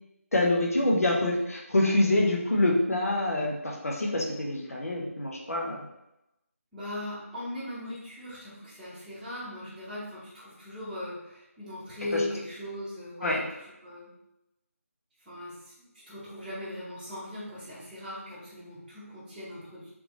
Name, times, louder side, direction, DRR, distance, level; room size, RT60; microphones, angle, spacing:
voice 1, 0.3-5.8 12.1-12.2 13.2-13.4, left 1 dB, 75° left, -1 dB, 1.1 m, -26 dB
voice 2, 6.7-14.1 15.2-19.9, left 1 dB, 5° right, -18 dB, 0.9 m, -39 dB
3.5 x 3.5 x 3.1 m, 0.89 s
figure-of-eight pair, 165°, 8 cm